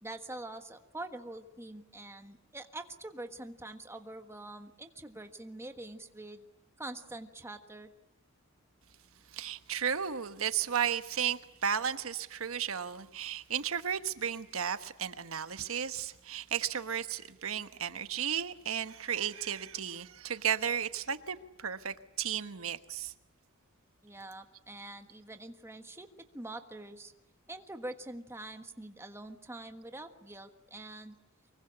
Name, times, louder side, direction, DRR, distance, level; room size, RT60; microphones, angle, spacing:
voice 1, 0.0-6.4 6.8-7.9 24.0-26.1 26.3-27.1 27.5-31.1, right 2 dB, 10° right, 1.4 m, -45 dB
voice 2, 9.3-23.1, right 8 dB, 80° right, 1.2 m, -34 dB
24.5 x 23.0 x 9.9 m
head